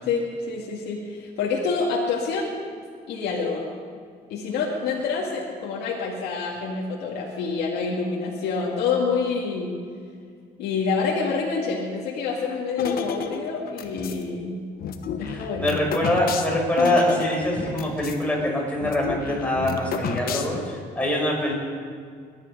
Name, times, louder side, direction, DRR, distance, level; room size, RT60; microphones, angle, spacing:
voice 1, 0.1-2.5 3.1-3.6 4.3-9.8 10.6-14.6 15.2-15.7, left 4 dB, 80° left, -3 dB, 2.2 m, -27 dB
sound 1, 12.8-14.2 14.8-18.2 18.5-18.6 18.8-20.8, left 6 dB, 60° left, 1.3 m, -31 dB
voice 2, 15.3-21.5, left 1 dB, 10° left, -2 dB, 5.5 m, -24 dB
22.0 x 11.0 x 5.5 m, 2.1 s
cardioid pair, 110°, 17 cm